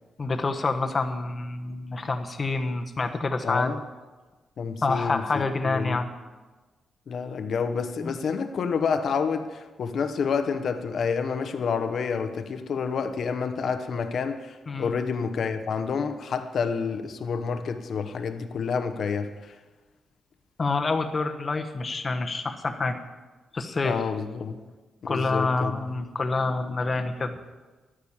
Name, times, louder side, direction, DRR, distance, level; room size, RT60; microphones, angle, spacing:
voice 1, 0.2-3.7 4.8-6.1 8.0-8.1 14.7-14.9 20.6-23.0 23.5-24.0 25.1-27.4, left 3 dB, 35° left, 6 dB, 1.1 m, -27 dB
voice 2, 3.4-3.8 4.6-6.0 7.1-19.5 23.8-24.6 25.1-25.7, left 5 dB, 60° left, 9 dB, 1.0 m, -29 dB
12.5 x 9.7 x 7.3 m, 1.3 s
cardioid pair, 105°, 0 cm